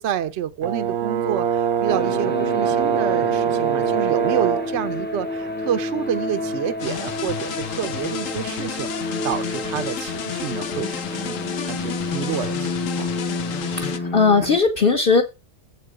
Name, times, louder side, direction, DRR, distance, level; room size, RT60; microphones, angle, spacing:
voice 1, 0.0-8.9 9.2-11.4 11.7-13.1, right 9 dB, 60° right, 0.9 m, -28 dB
Brass instrument, 0.6-4.8, right 8 dB, 80° right, 1.2 m, -22 dB
sound 1, 1.9-14.6, left 2 dB, 10° left, 0.8 m, -30 dB
sound 2, 6.8-14.0, left 9 dB, 65° left, 1.2 m, -32 dB
voice 2, 13.6-15.2, left 4 dB, 40° left, 1.2 m, -18 dB
8.2 x 7.4 x 4.9 m
omnidirectional pair, 1.5 m